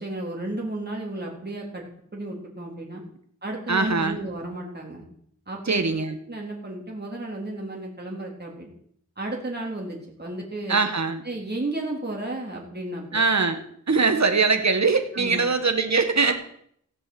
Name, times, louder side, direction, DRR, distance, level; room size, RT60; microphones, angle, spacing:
voice 1, 0.0-1.9 2.1-3.0 3.4-5.0 5.5-5.9 6.3-8.7 9.2-10.8 11.2-13.2 15.1-15.4 16.3-16.4, right 2 dB, 35° right, -2 dB, 4.0 m, -33 dB
voice 2, 3.7-4.2 5.7-6.2 10.7-11.2 13.1-16.3, right 4 dB, 65° right, 7 dB, 2.0 m, -22 dB
16.5 x 7.8 x 8.2 m, 0.66 s
wide cardioid pair, 75°, 30 cm